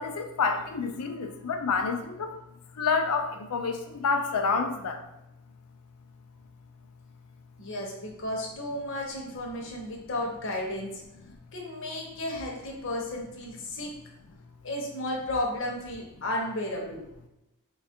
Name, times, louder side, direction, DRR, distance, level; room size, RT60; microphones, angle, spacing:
voice 1, 0.0-2.4 2.7-5.0, left 5 dB, 90° left, 6 dB, 0.5 m, -28 dB
voice 2, 7.6-10.9 11.5-13.9 14.6-17.0, left 1 dB, 60° left, 0 dB, 0.8 m, -33 dB
3.2 x 2.3 x 4.3 m, 0.91 s
head